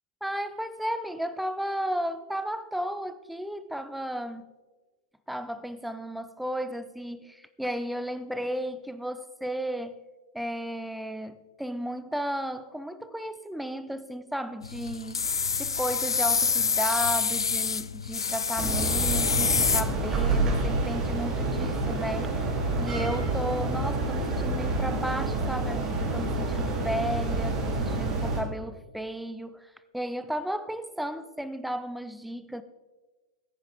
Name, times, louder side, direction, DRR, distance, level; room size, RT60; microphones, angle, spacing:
voice 1, 0.2-4.5 5.3-10.0 10.3-15.3 15.6-22.3 22.8-32.6, equal, ahead, 0.6 m, -34 dB
sound 1, 14.6-20.3, left 5 dB, 85° left, 0.4 m, -27 dB
sound 2, 18.6-28.4, right 2 dB, 25° right, 2.9 m, -28 dB
14.5 x 10.0 x 3.5 m
figure-of-eight pair, 105°, 2 cm